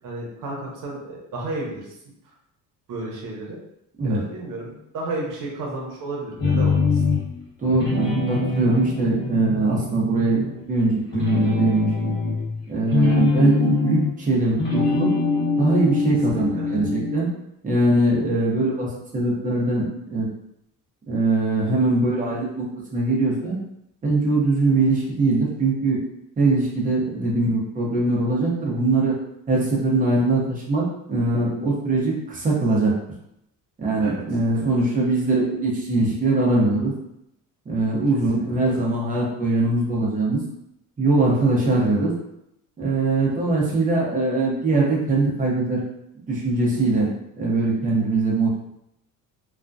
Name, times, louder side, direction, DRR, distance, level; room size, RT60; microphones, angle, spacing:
voice 1, 0.0-2.0 2.9-3.6 4.0-7.0 16.3-16.7 34.0-34.2 34.5-34.7 38.3-38.5 38.7-38.8 43.2-43.7, right 2 dB, 70° right, -2 dB, 0.8 m, -33 dB
sound 1, 6.4-7.4 7.7-10.7 11.1-14.2 14.5-17.2, left 3 dB, 30° left, 1.0 m, -23 dB
voice 2, 7.6-10.4 10.7-11.9 12.7-15.1 15.6-17.3 17.6-20.3 21.1-22.7 22.9-23.6 24.0-26.0 26.4-29.2 29.5-32.9 33.8-36.9 37.7-40.4 41.0-42.1 42.8-45.8 46.3-47.1 47.4-48.7, right 2 dB, 25° right, -4 dB, 0.7 m, -22 dB
2.3 x 2.1 x 2.5 m, 0.80 s
cardioid pair, 130°, 33 cm